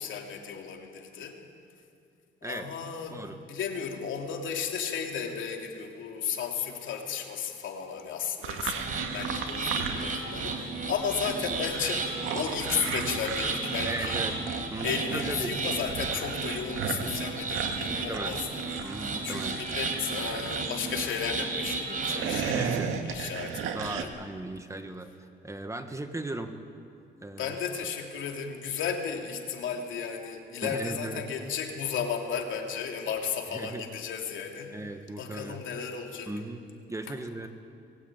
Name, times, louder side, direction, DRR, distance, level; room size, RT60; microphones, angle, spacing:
voice 1, 0.0-1.4 2.4-14.4 14.8-18.5 19.2-22.8 23.0-24.1 27.4-34.7 35.2-36.3, left 7 dB, 75° left, 2 dB, 3.1 m, -34 dB
sound 1, 8.4-10.6 10.9-21.5 22.0-24.0, right 7 dB, 85° right, 1.9 m, -35 dB
sound 2, 8.7-22.3, right 3 dB, 40° right, 4.5 m, -34 dB
voice 2, 13.8-14.4 14.7-15.5 17.9-18.3 18.8-19.6 22.5-22.9 23.7-26.5 27.2-27.6 30.6-31.2 33.5-33.8 34.7-35.6 36.3-37.5, right 2 dB, 15° right, 7 dB, 1.7 m, -37 dB
22.5 x 17.0 x 9.2 m, 2.5 s
cardioid pair, 90°, 20 cm